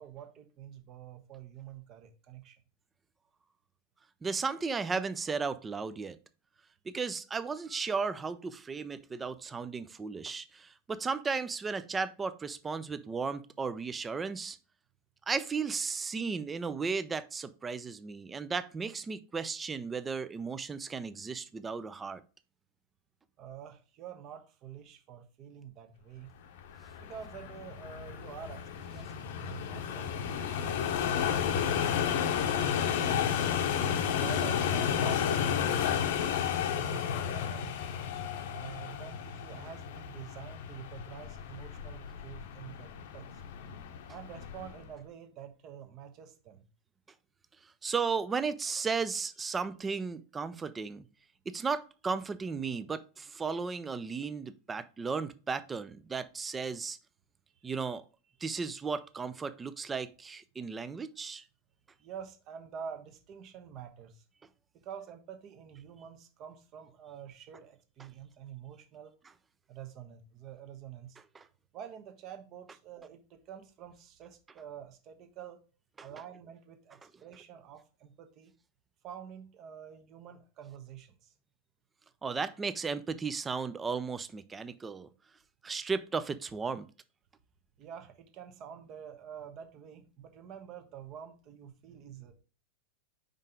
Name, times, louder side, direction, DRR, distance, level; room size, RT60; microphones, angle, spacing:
voice 1, 0.0-2.6 23.4-26.3 27.0-31.0 31.7-33.4 34.0-37.7 38.5-43.4 44.1-46.6 57.5-57.7 62.0-64.2 64.7-69.1 69.7-71.2 71.7-75.6 76.0-78.5 79.0-81.3 87.8-92.3, right 8 dB, 35° right, 1.1 m, -47 dB
voice 2, 4.2-6.2 6.9-14.6 15.3-22.2 47.8-51.1 51.5-57.0 57.6-58.0 58.4-61.4 71.4-71.5 82.2-85.1 85.6-86.9, right 5 dB, 15° right, 0.5 m, -35 dB
sound 1, 26.6-44.9, left 8 dB, 55° left, 0.8 m, -32 dB
5.4 x 5.4 x 3.6 m
figure-of-eight pair, 90°, 0 cm